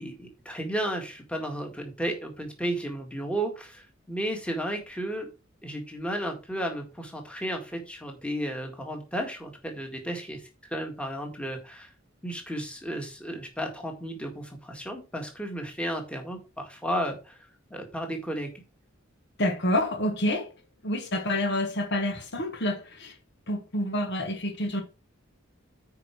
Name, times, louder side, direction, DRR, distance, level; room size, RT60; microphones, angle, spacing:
voice 1, 0.0-5.3 5.6-10.4 10.7-11.9 12.2-18.5, right 1 dB, 5° left, 1.8 m, -33 dB
voice 2, 19.4-20.5 20.8-23.1 23.5-24.8, left 1 dB, 55° left, 1.4 m, -28 dB
9.3 x 4.7 x 4.6 m
head